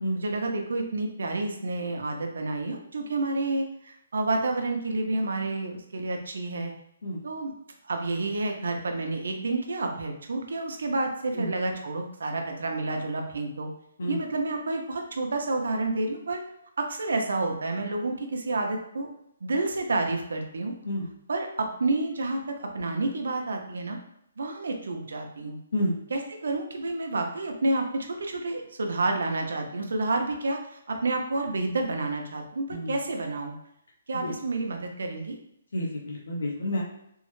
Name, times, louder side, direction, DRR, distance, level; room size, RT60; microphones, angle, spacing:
voice 1, 0.1-6.7 7.2-7.5 7.8-13.7 14.1-16.4 16.8-19.1 19.4-20.7 21.3-24.0 24.4-25.6 26.1-33.5 34.1-35.4, right 2 dB, 80° right, 3 dB, 0.6 m, -29 dB
voice 2, 35.7-36.8, equal, 65° left, -3 dB, 0.7 m, -29 dB
3.6 x 2.1 x 3.1 m, 0.75 s
hypercardioid pair, 175°, 0 cm